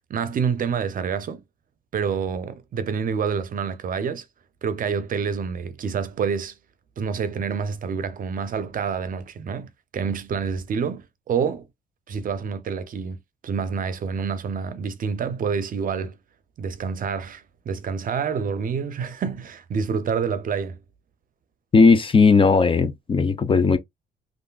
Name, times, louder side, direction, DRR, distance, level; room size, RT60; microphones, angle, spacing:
voice 1, 0.1-1.4 1.9-4.2 4.6-6.5 7.0-11.7 12.1-13.2 13.4-16.2 16.6-20.8, right 6 dB, 50° right, 0.6 m, -27 dB
voice 2, 21.7-23.8, left 4 dB, 30° left, 0.5 m, -17 dB
3.3 x 2.5 x 2.4 m
cardioid pair, 90°, 18 cm